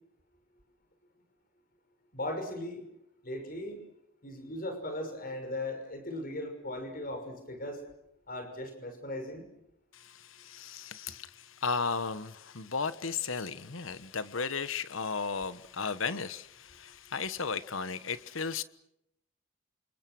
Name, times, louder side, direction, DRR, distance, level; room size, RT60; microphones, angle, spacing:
voice 1, 2.1-2.8 3.2-3.8 4.2-7.8 8.3-9.5, left 1 dB, 45° left, 6.2 m, -38 dB
voice 2, 10.3-11.3 11.6-18.6, left 5 dB, 75° left, 1.2 m, -34 dB
28.0 x 28.0 x 6.3 m
head